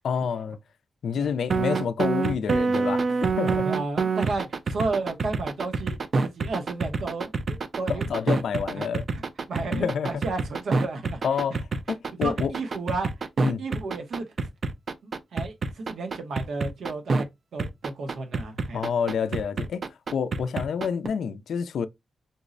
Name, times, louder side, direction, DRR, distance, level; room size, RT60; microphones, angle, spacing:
voice 1, 0.0-0.6 1.0-3.1 3.4-3.7 7.9-9.1 9.7-10.2 11.2-12.5 13.4-13.6 18.7-21.9, left 7 dB, 80° left, 0.3 m, -28 dB
sound 1, 1.5-17.2 17.6-21.1, right 4 dB, 50° right, 0.4 m, -26 dB
voice 2, 3.6-8.1 8.7-8.9 9.1-9.2 9.5-11.2 12.2-13.1 13.4-14.3 15.0-17.3 17.5-18.8, right 3 dB, 75° right, 0.8 m, -33 dB
5.2 x 2.0 x 2.5 m
wide cardioid pair, 110°, 0 cm